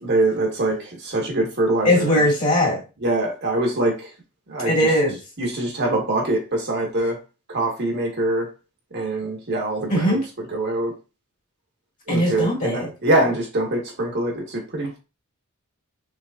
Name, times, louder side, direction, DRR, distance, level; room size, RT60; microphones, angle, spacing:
voice 1, 0.0-2.2 3.0-4.1 4.5-4.7 5.4-7.2 7.5-8.5 8.9-10.2 10.5-10.9 12.1-15.0, right 2 dB, 50° right, 1.4 m, -23 dB
voice 2, 1.8-2.8 4.7-5.2 9.9-10.2 12.1-12.9, left 1 dB, 35° left, 2.0 m, -19 dB
6.0 x 3.3 x 2.5 m
head